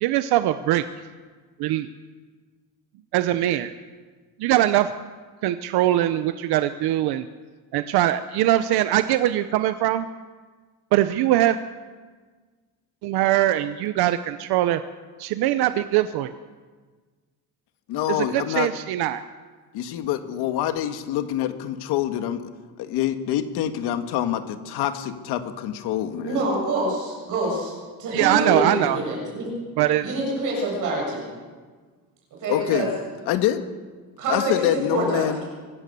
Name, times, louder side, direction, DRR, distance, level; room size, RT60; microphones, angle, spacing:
voice 1, 0.0-0.8 1.6-1.9 3.1-3.7 4.4-4.9 5.4-7.3 7.7-10.1 10.9-11.6 13.0-14.8 15.2-16.3 18.1-19.2 28.1-29.0 29.8-30.1, right 13 dB, 80° right, 11 dB, 0.9 m, -22 dB
voice 2, 17.9-18.7 19.7-22.4 22.8-26.5 32.5-32.9 33.3-33.7 34.3-35.4, left 11 dB, 90° left, 8 dB, 1.8 m, -25 dB
voice 3, 26.2-27.7 28.0-29.5 30.0-31.2 32.4-32.9 34.2-35.3, right 2 dB, 55° right, -3 dB, 7.4 m, -26 dB
24.0 x 16.0 x 6.9 m, 1.4 s
cardioid pair, 170°, 38 cm